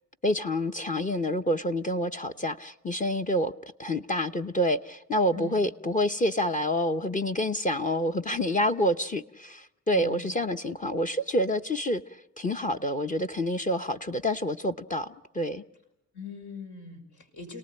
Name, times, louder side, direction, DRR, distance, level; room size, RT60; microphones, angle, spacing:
voice 1, 0.2-3.5 3.8-15.6, equal, 25° left, 7 dB, 0.9 m, -28 dB
voice 2, 9.9-10.3 16.1-17.6, left 4 dB, 75° left, 4 dB, 5.7 m, -41 dB
29.5 x 19.0 x 8.9 m, 0.87 s
cardioid pair, 90°, 30 cm